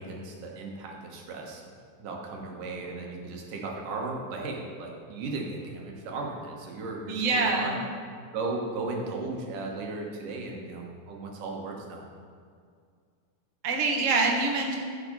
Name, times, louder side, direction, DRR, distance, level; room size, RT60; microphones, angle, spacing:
voice 1, 0.0-1.7 2.0-7.8 8.3-12.1, right 3 dB, 90° right, 0 dB, 3.0 m, -36 dB
voice 2, 7.1-7.8 13.6-14.7, right 3 dB, 55° right, 0 dB, 0.8 m, -25 dB
15.0 x 5.9 x 5.4 m, 2.2 s
omnidirectional pair, 3.6 m